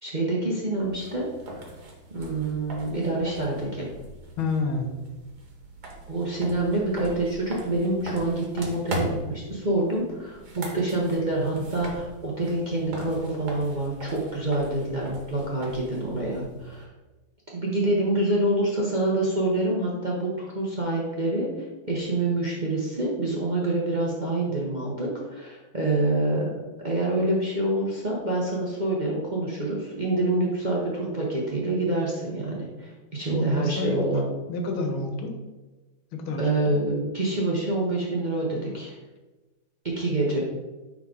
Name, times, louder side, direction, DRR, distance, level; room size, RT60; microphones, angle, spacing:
voice 1, 0.0-1.3 1.5-1.7 2.1-3.9 6.1-16.9 17.5-21.5 21.9-26.5 26.8-34.2 36.4-39.0 40.0-40.4, right 2 dB, 30° right, -4 dB, 0.9 m, -26 dB
sound 1, 0.8-16.8, right 1 dB, 55° right, 1.7 m, -40 dB
voice 2, 4.4-5.0 33.2-34.0 34.5-35.4 36.1-36.7, left 3 dB, 85° left, 3 dB, 1.8 m, -29 dB
9.4 x 3.8 x 3.8 m, 1.2 s
omnidirectional pair, 2.1 m